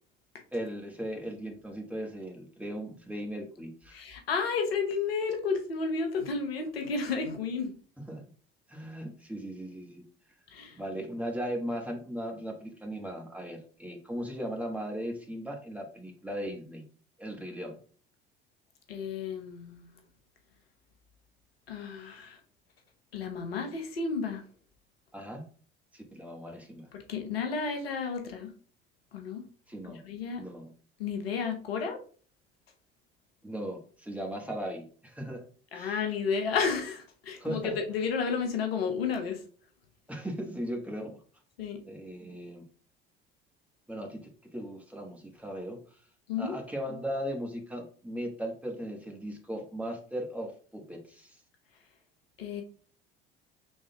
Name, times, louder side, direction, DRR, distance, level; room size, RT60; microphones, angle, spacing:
voice 1, 0.5-4.0 8.1-8.2 8.7-10.0 10.7-16.8 17.2-17.8 25.1-25.4 25.9-26.9 29.7-30.0 30.4-30.7 33.4-35.4 35.7-36.0 37.4-37.8 40.1-41.2 41.8-42.7 43.9-46.0 46.4-51.4, equal, 5° right, 1.1 m, -37 dB
voice 2, 3.9-7.7 10.5-10.8 18.9-19.9 21.7-22.4 23.1-24.4 26.9-28.5 29.1-29.4 30.0-30.4 31.0-32.0 35.7-39.4 41.6-41.8 46.3-46.6 52.4-52.6, left 5 dB, 80° left, 0.8 m, -32 dB
5.3 x 3.5 x 2.2 m
figure-of-eight pair, 60°, 30 cm